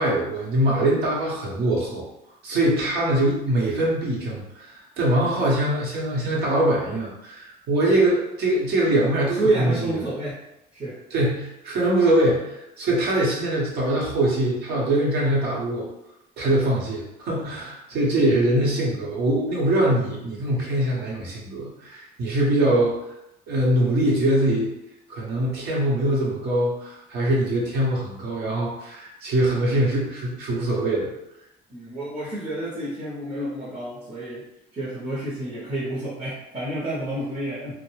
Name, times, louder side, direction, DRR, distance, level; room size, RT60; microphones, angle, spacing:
voice 1, 0.0-2.0 2.4-9.9 11.1-15.9 16.4-22.9 23.5-24.7 25.1-31.1, right 1 dB, 70° right, -3 dB, 0.9 m, -23 dB
voice 2, 9.3-10.4 10.7-11.0 18.2-18.3 21.2-21.3 31.7-34.4 34.7-37.7, right 2 dB, 35° right, -8 dB, 0.7 m, -29 dB
2.3 x 2.1 x 3.1 m, 0.86 s
cardioid pair, 110°, 17 cm